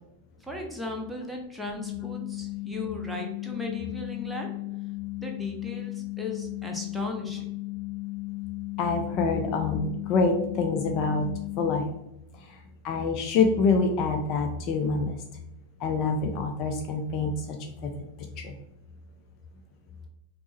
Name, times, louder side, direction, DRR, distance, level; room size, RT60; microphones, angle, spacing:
voice 1, 0.4-4.5 5.2-7.5, left 1 dB, ahead, 0 dB, 0.7 m, -36 dB
sound 1, 1.8-11.8, left 21 dB, 20° left, 1.4 m, -35 dB
voice 2, 8.8-11.3 11.6-11.9 12.4-12.6 12.8-15.2 15.8-17.9 18.4-18.5, left 4 dB, 40° left, 4 dB, 0.4 m, -26 dB
5.1 x 2.0 x 3.0 m, 0.87 s
figure-of-eight pair, 90°, 0 cm